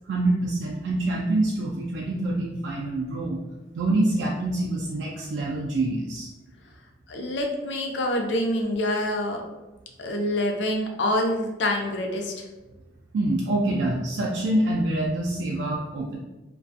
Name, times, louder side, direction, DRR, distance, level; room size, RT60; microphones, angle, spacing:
voice 1, 0.1-3.4 3.7-6.3 13.1-16.2, right 2 dB, 80° right, -2 dB, 0.3 m, -26 dB
voice 2, 7.1-9.4 10.0-12.4, left 1 dB, 80° left, 2 dB, 0.5 m, -26 dB
2.4 x 2.2 x 2.6 m, 1.1 s
head